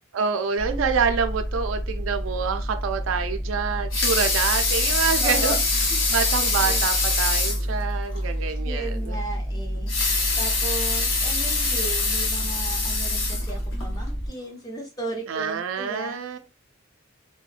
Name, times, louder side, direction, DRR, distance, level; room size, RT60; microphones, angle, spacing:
voice 1, 0.1-5.5 6.1-9.2 15.3-16.4, right 6 dB, 70° right, 0.3 m, -27 dB
sound 1, 0.6-14.3, equal, 85° left, 1.2 m, -29 dB
Water tap faucet / Sink (filling or washing) / Liquid, 3.7-7.7 8.1-8.2 8.6-8.7 9.7-13.9 14.5-14.6, left 3 dB, 65° left, 0.7 m, -24 dB
voice 2, 5.2-5.6 6.6-6.9 8.6-9.9 10.4-16.2, right 2 dB, 20° left, 0.5 m, -35 dB
2.8 x 2.1 x 2.3 m
head